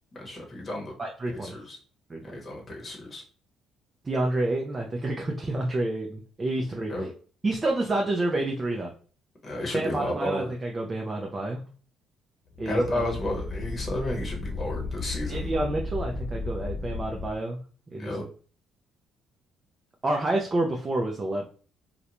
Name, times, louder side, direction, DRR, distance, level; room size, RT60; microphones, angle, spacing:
voice 1, 0.1-1.0 1.3-1.8 2.2-3.2 6.9-7.1 9.4-10.5 12.6-15.5 18.0-18.2, left 1 dB, 30° left, 0 dB, 0.9 m, -32 dB
voice 2, 1.0-1.5 2.1-2.4 4.0-6.9 7.4-8.9 9.7-11.6 12.6-13.0 15.3-17.6 17.9-18.1 20.0-21.4, right 2 dB, 25° right, 0 dB, 0.4 m, -29 dB
sound 1, 12.5-17.4, left 3 dB, 65° left, 0.7 m, -34 dB
2.5 x 2.1 x 2.9 m, 0.40 s
cardioid pair, 105°, 0 cm